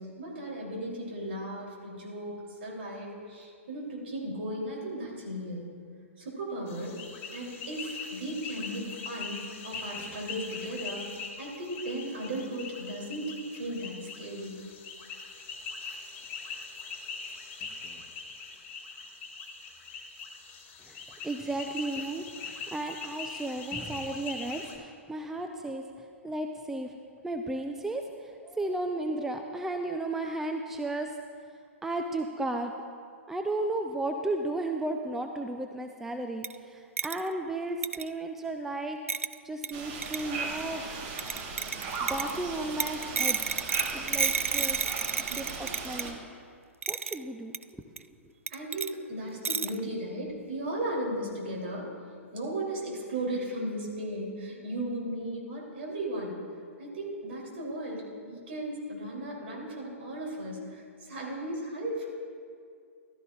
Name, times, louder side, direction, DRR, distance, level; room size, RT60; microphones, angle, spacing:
voice 1, 0.0-5.6 6.2-7.0 7.3-11.1 11.4-14.6 48.5-51.9 52.3-56.4 56.8-62.1, right 1 dB, 55° right, -2 dB, 3.2 m, -36 dB
sound 1, 6.7-24.8, left 4 dB, 25° left, 1.3 m, -42 dB
voice 2, 21.2-25.8 26.2-26.9 27.2-31.1 31.8-32.7 33.3-39.0 39.4-40.8 42.0-43.4 43.9-44.9 45.3-46.2 46.9-47.5, right 2 dB, 5° right, 4 dB, 0.4 m, -34 dB
sound 2, 36.4-36.5 37.0-37.2 37.8-38.1 39.1-39.3 39.6-39.7 40.0-40.2 41.2-42.4 42.8-46.1 46.8-47.2 47.5-47.6 48.0-48.1 48.5-48.9 49.4-49.8, right 5 dB, 75° right, 0.3 m, -30 dB
sound 3, 39.7-46.1, right 4 dB, 35° right, 1.4 m, -37 dB
15.0 x 12.5 x 2.5 m, 2.2 s
figure-of-eight pair, 110°, 7 cm